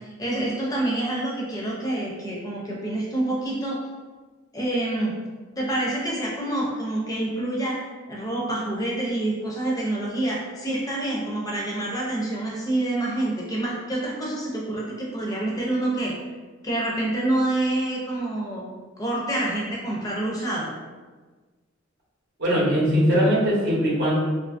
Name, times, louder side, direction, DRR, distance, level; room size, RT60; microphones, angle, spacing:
voice 1, 0.0-3.8 4.5-5.1 5.6-16.1 16.6-18.7 19.0-20.7, right 1 dB, 20° left, -3 dB, 0.5 m, -27 dB
voice 2, 22.4-24.1, equal, 55° right, -6 dB, 0.8 m, -20 dB
2.7 x 2.5 x 2.5 m, 1.3 s
head